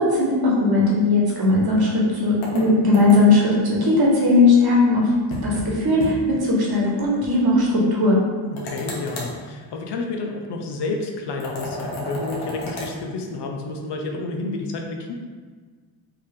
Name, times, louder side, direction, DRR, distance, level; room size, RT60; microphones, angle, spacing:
voice 1, 0.0-5.1 5.4-8.2, left 2 dB, 50° right, -4 dB, 1.3 m, -18 dB
sound 1, 2.4-3.4 5.3-5.7 6.0-6.1 6.5-6.6 8.6-9.3 11.4-12.9, left 1 dB, 80° left, 1.0 m, -32 dB
voice 2, 8.5-15.1, left 3 dB, 60° left, 2 dB, 0.7 m, -30 dB
3.3 x 2.8 x 3.5 m, 1.5 s
supercardioid pair, 55°, 47 cm